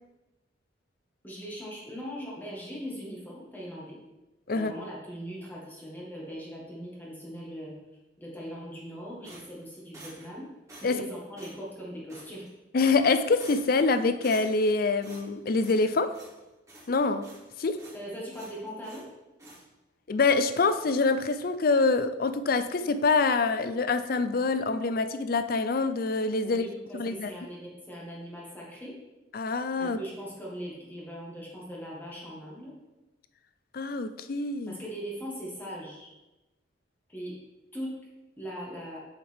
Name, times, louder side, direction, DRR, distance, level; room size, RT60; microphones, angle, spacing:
voice 1, 1.2-4.0 4.5-7.7 8.2-10.5 10.8-12.5 17.9-19.1 26.4-28.9 29.8-32.7 34.7-36.1 37.1-37.4 37.7-37.9 38.4-39.0, equal, 10° left, -5 dB, 1.7 m, -40 dB
sound 1, 9.2-10.4 10.7-11.1 11.4-11.6 12.1-12.5 12.8-13.1 13.4-13.8 14.2-14.7 15.0-16.4 16.7-17.5 17.8-18.0 18.3-19.1 19.4-19.6, right 1 dB, 15° right, 2.1 m, -49 dB
voice 2, 12.7-16.2 16.9-17.2 17.6-17.8 20.1-26.7 26.9-27.3 29.3-30.0 33.7-34.8, left 3 dB, 50° left, 11 dB, 0.5 m, -25 dB
7.8 x 7.3 x 3.5 m, 1.0 s
head